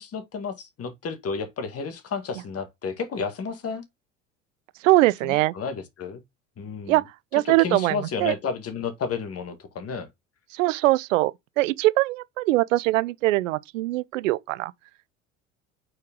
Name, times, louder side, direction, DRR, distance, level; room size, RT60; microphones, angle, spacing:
voice 1, 0.0-3.8 5.2-6.2 6.6-7.0 7.4-10.1, left 5 dB, 40° left, 2.0 m, -32 dB
voice 2, 4.8-5.5 6.9-7.0 7.3-8.3 10.5-14.7, right 18 dB, 85° right, 0.6 m, -22 dB
6.4 x 4.6 x 3.6 m
hypercardioid pair, 75°, 38 cm